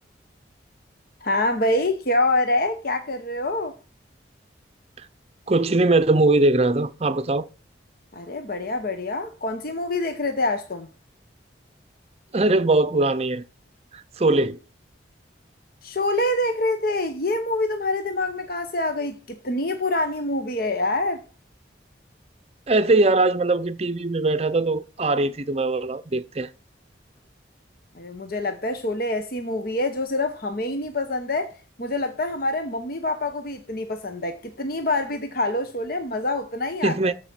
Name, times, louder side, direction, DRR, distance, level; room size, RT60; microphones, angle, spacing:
voice 1, 1.2-3.7 8.1-10.9 15.8-21.2 27.9-37.1, left 2 dB, 50° left, 0.9 m, -26 dB
voice 2, 5.5-7.5 12.3-13.4 13.9-14.6 22.7-26.5 36.8-37.1, right 2 dB, 35° right, 0.6 m, -21 dB
13.5 x 4.9 x 6.1 m
head